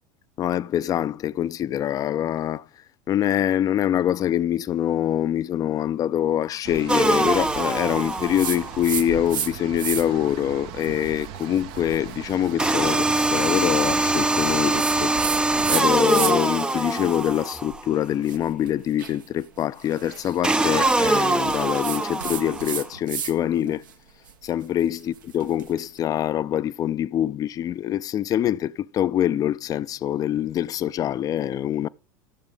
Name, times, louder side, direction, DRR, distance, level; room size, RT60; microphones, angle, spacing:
voice 1, 0.4-2.7 3.1-15.4 15.7-23.8 24.4-31.9, left 11 dB, 35° left, 0.5 m, -25 dB
sound 1, 6.6-15.7, right 13 dB, 55° right, 0.8 m, -39 dB
sound 2, 6.9-8.9 12.6-17.9 20.4-22.8, right 2 dB, 10° right, 0.5 m, -23 dB
sound 3, 8.3-9.5 9.8-10.3 10.8-16.6 16.9-23.3 23.6-25.8, right 8 dB, 80° right, 1.3 m, -34 dB
15.0 x 7.3 x 3.9 m
hypercardioid pair, 85°, 11 cm